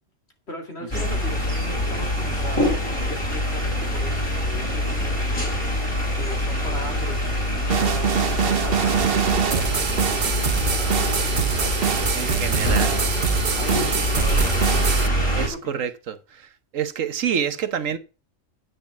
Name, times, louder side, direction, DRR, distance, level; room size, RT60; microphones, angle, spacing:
voice 1, 0.5-2.7 3.1-12.9 13.6-15.1 15.4-15.8, equal, 55° left, 2.7 m, -38 dB
sound 1, 0.9-15.5, equal, 20° left, 4.0 m, -24 dB
sound 2, 7.7-15.1, right 7 dB, 50° right, 1.1 m, -24 dB
voice 2, 12.1-12.9 15.3-16.5 16.7-18.0, right 8 dB, 75° right, 1.4 m, -27 dB
9.4 x 6.9 x 5.8 m
omnidirectional pair, 1.4 m